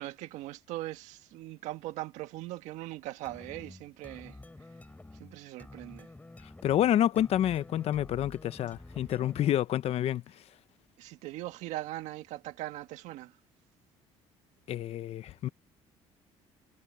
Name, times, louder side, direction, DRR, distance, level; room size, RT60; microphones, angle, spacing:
voice 1, 0.0-4.4 5.2-6.1 11.0-13.4, right 16 dB, 80° right, 1.6 m, -40 dB
sound 1, 3.2-9.7, left 2 dB, 15° left, 3.2 m, -50 dB
voice 2, 6.6-10.2 14.7-15.5, left 11 dB, 60° left, 0.9 m, -28 dB
cardioid pair, 100°, 12 cm